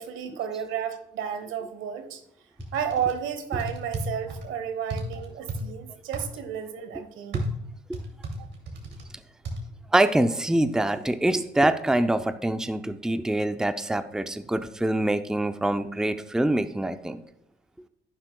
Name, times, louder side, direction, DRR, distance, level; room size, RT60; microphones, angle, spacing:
voice 1, 0.0-2.2 2.7-7.5 8.4-8.5, right 8 dB, 85° right, 9 dB, 1.1 m, -32 dB
sound 1, 2.6-3.1 3.5-4.5 4.9-5.6 6.1-6.3 7.3-9.1 9.5-9.6, right 2 dB, 65° right, 2.5 m, -33 dB
voice 2, 9.9-17.2, right 1 dB, 5° right, 9 dB, 0.5 m, -25 dB
11.5 x 9.6 x 2.3 m, 0.75 s
cardioid pair, 90°, 20 cm